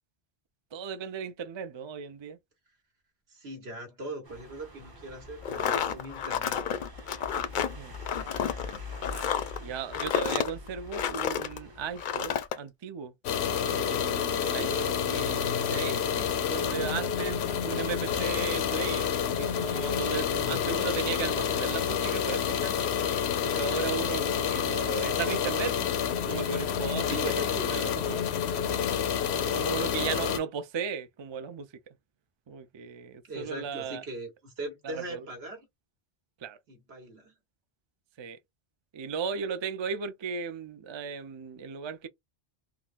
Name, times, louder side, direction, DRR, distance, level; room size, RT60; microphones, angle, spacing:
voice 1, 0.7-2.4 7.8-7.9 9.1-9.3 9.6-13.1 13.5-22.9 23.4-25.9 26.3-27.4 27.7-28.2 29.3-31.7 32.5-34.0 34.9-35.3 36.4-36.6 38.2-38.4 38.9-42.1, right 6 dB, 40° right, 0.4 m, -36 dB
voice 2, 3.3-6.8 14.6-14.8 17.6-18.2 20.3-20.8 27.0-28.0 33.3-35.7 36.7-37.3, right 1 dB, 75° right, 1.6 m, -40 dB
sound 1, 4.2-12.5, left 2 dB, 25° right, 0.8 m, -45 dB
sound 2, 5.4-11.6 12.0-12.6, left 8 dB, 60° left, 0.6 m, -30 dB
sound 3, 13.2-30.4, left 8 dB, 90° left, 0.9 m, -29 dB
3.6 x 2.2 x 2.4 m
omnidirectional pair, 1.1 m